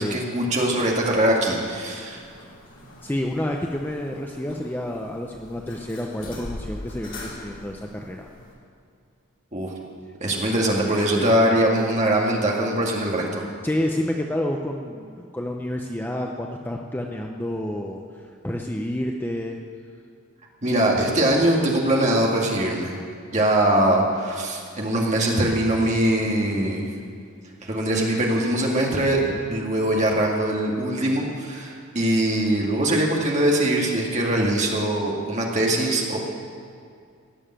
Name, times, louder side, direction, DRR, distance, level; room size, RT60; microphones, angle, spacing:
voice 1, 0.0-2.2 9.5-9.7 10.2-13.4 20.6-23.0 23.3-26.9 27.6-29.2 29.5-36.2, right 1 dB, 30° right, -2 dB, 2.2 m, -22 dB
sound 1, 0.9-8.5, left 1 dB, 55° left, 3.0 m, -42 dB
voice 2, 3.0-8.3 11.1-11.3 13.6-19.6 29.2-29.5, left 1 dB, 10° left, 1 dB, 0.6 m, -29 dB
18.0 x 7.2 x 8.9 m, 2.3 s
head